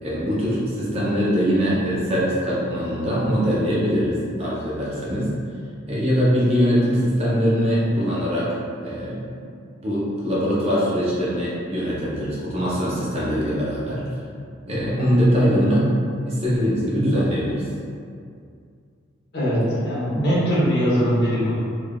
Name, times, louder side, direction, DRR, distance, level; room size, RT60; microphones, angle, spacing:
voice 1, 0.0-5.3 5.9-9.4 9.8-14.0 14.7-15.9 16.2-17.6, equal, 30° right, -7 dB, 0.5 m, -22 dB
voice 2, 19.3-21.5, equal, 55° left, -10 dB, 1.0 m, -21 dB
3.3 x 2.4 x 2.2 m, 2.3 s
head